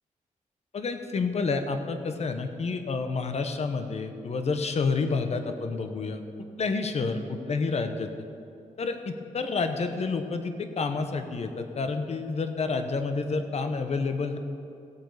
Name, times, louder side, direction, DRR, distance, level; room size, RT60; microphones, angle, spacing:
voice 1, 0.7-6.2 6.6-8.1 8.8-14.4, left 4 dB, 50° left, 7 dB, 0.9 m, -29 dB
16.5 x 8.0 x 4.9 m, 2.5 s
wide cardioid pair, 100°, 14 cm